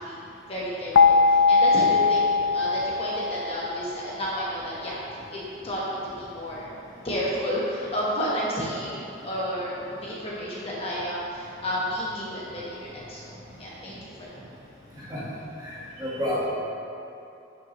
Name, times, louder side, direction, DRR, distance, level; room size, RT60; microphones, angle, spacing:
voice 1, 0.5-5.0 5.3-6.7 7.0-14.4, equal, 30° left, -7 dB, 1.2 m, -31 dB
sound 1, 1.0-3.9, left 4 dB, 65° left, 0.3 m, -20 dB
voice 2, 15.6-16.5, left 1 dB, 15° right, -7 dB, 1.5 m, -30 dB
10.5 x 5.8 x 3.1 m, 2.7 s
head